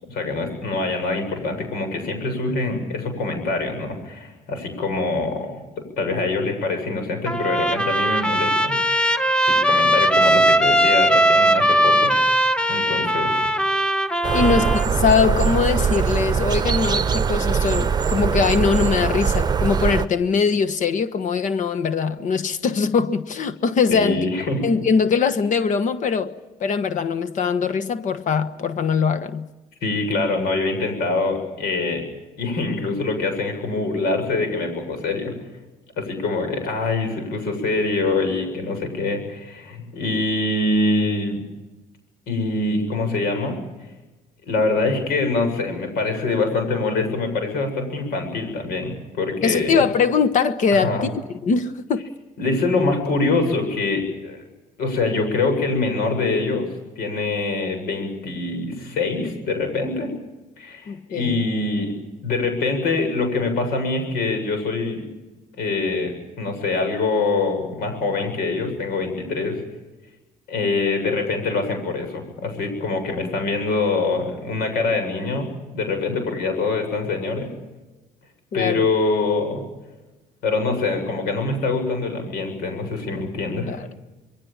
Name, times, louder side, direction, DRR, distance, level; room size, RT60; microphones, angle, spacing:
voice 1, 0.0-9.1 9.4-12.1 12.7-13.5 14.3-14.6 23.9-24.6 29.8-32.0 32.4-35.3 36.0-41.4 42.3-43.6 44.5-49.8 50.7-51.1 52.4-54.4 54.8-56.7 57.0-60.1 60.6-61.9 62.2-65.0 65.6-69.6 70.5-75.5 75.7-77.5 78.5-79.6 80.4-83.8, left 3 dB, 85° left, 7.8 m, -24 dB
Trumpet, 7.3-14.9, right 1 dB, 5° left, 1.2 m, -19 dB
sound 1, 14.2-20.1, right 6 dB, 25° right, 1.0 m, -21 dB
voice 2, 14.3-24.2 24.6-29.5 49.4-51.1 51.4-52.0 60.9-61.4 78.5-78.8 83.7-83.9, left 5 dB, 55° left, 1.3 m, -21 dB
26.0 x 22.5 x 7.3 m
cardioid pair, 115°, 15 cm